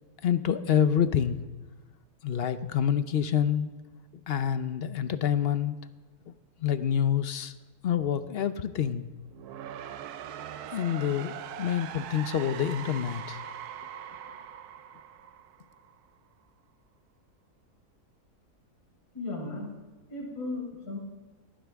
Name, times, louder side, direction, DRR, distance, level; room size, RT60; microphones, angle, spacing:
voice 1, 0.2-1.4 2.2-3.7 4.3-5.8 6.6-7.5 7.8-9.1 10.7-13.4, left 9 dB, 55° left, 12 dB, 0.7 m, -27 dB
sound 1, 9.2-16.1, right 9 dB, 85° right, 1.2 m, -41 dB
voice 2, 19.1-19.7 20.1-21.0, left 2 dB, 75° left, -2 dB, 5.1 m, -35 dB
20.0 x 15.5 x 3.5 m, 1.2 s
omnidirectional pair, 1.6 m